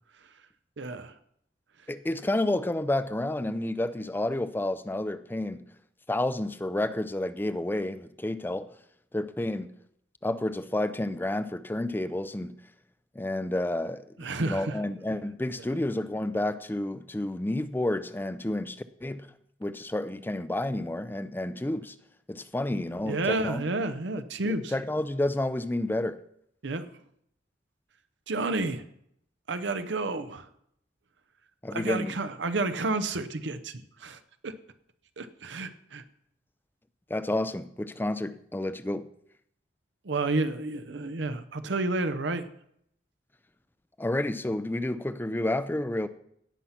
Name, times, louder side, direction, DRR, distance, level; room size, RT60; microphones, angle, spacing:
voice 1, 0.8-1.1 14.2-14.8 23.0-24.7 26.6-26.9 28.3-28.8 29.5-30.5 31.7-34.5 35.2-36.0 40.0-42.5, right 2 dB, 80° right, 0.8 m, -30 dB
voice 2, 1.9-5.6 6.1-8.7 9.1-9.7 10.2-12.6 13.2-19.3 19.6-21.9 22.3-23.6 24.5-26.2 31.6-32.2 37.1-39.1 44.0-46.1, left 1 dB, 10° left, 0.4 m, -30 dB
17.5 x 5.8 x 5.7 m
head